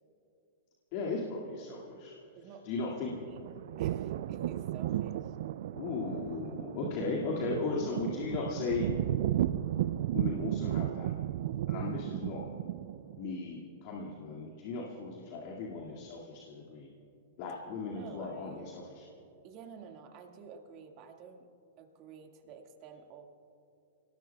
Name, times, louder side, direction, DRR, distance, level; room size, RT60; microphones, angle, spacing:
voice 1, 0.9-2.2 2.6-3.1 4.1-4.2 5.7-8.9 10.1-11.1 11.7-12.4 13.2-16.9 17.4-19.1, left 4 dB, 50° left, -3 dB, 2.1 m, -37 dB
voice 2, 2.4-5.4 17.9-18.6 19.4-21.5 21.8-23.3, right 6 dB, 40° right, 3 dB, 1.9 m, -51 dB
sound 1, 2.8-13.2, right 12 dB, 60° right, 0.4 m, -34 dB
30.0 x 18.5 x 2.3 m, 2.7 s
hypercardioid pair, 110°, 0 cm